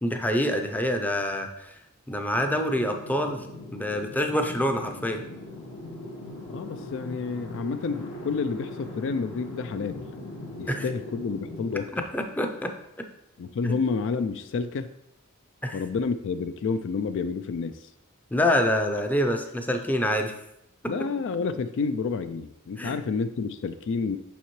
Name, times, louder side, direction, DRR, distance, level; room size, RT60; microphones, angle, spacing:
voice 1, 0.0-1.7 2.1-3.5 3.7-5.2 10.7-10.8 11.9-12.7 13.6-13.8 15.6-15.8 18.3-20.3 22.8-22.9, left 1 dB, 10° left, 5 dB, 0.5 m, -26 dB
sound 1, 2.3-11.7, left 2 dB, 80° left, 1.2 m, -40 dB
voice 2, 6.5-10.0 10.5-11.9 13.4-14.9 15.7-17.9 20.8-24.2, left 4 dB, 60° left, 11 dB, 0.3 m, -29 dB
7.1 x 5.7 x 3.1 m, 0.83 s
head